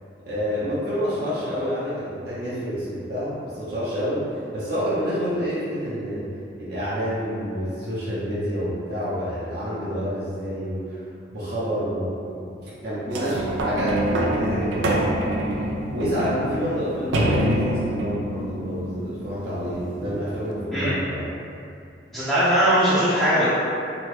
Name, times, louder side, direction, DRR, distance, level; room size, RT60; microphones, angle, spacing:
voice 1, 0.3-6.2 6.6-11.0 11.3-15.2 15.9-21.3, equal, 55° right, -10 dB, 0.7 m, -28 dB
sound 1, 13.1-19.9 20.5-20.6, right 1 dB, 85° right, 0.4 m, -26 dB
voice 2, 22.1-23.5, equal, 5° left, -15 dB, 0.6 m, -20 dB
2.9 x 2.1 x 3.1 m, 2.5 s
head